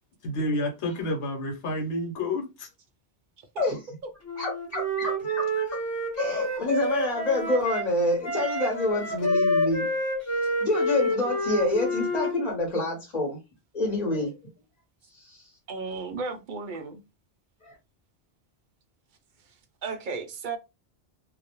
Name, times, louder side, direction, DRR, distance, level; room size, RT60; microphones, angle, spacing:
voice 1, 0.2-2.7, left 1 dB, 80° left, 1.0 m, -29 dB
Wind instrument woodwind instrument, 4.3-7.9 8.2-12.4, equal, 25° left, 0.4 m, -28 dB
voice 2, 4.4-5.6 6.2-9.9 10.2-13.4 13.7-14.3 15.1-15.4 17.6-17.7, left 2 dB, 40° left, 0.8 m, -27 dB
voice 3, 15.7-17.0 19.5-20.6, right 4 dB, 60° right, 0.5 m, -34 dB
2.3 x 2.0 x 2.8 m
omnidirectional pair, 1.2 m